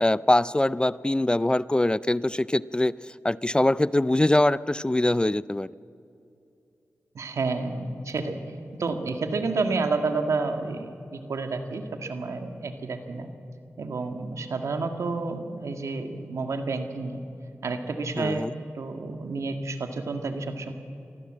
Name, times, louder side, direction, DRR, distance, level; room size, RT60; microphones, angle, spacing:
voice 1, 0.0-2.9 3.2-5.7 18.2-18.5, left 1 dB, 20° left, 19 dB, 0.4 m, -23 dB
voice 2, 7.2-8.4 8.8-13.3 13.8-17.2 17.6-20.7, right 3 dB, 80° right, 6 dB, 1.8 m, -30 dB
23.5 x 15.0 x 7.6 m, 2.6 s
cardioid pair, 50°, 5 cm